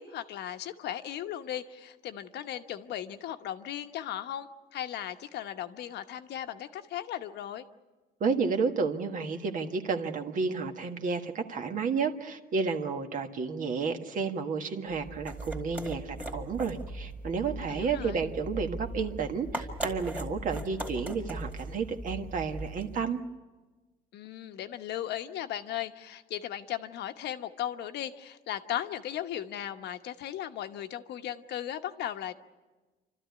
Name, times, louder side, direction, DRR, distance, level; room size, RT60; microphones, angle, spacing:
voice 1, 0.0-7.6 17.7-18.3 24.1-32.3, left 11 dB, 70° left, 8 dB, 1.1 m, -37 dB
voice 2, 8.2-23.2, right 5 dB, 45° right, 6 dB, 1.6 m, -31 dB
sound 1, 14.9-23.1, right 1 dB, 10° right, 2.4 m, -39 dB
28.5 x 13.0 x 9.5 m, 1.2 s
cardioid pair, 140°, 18 cm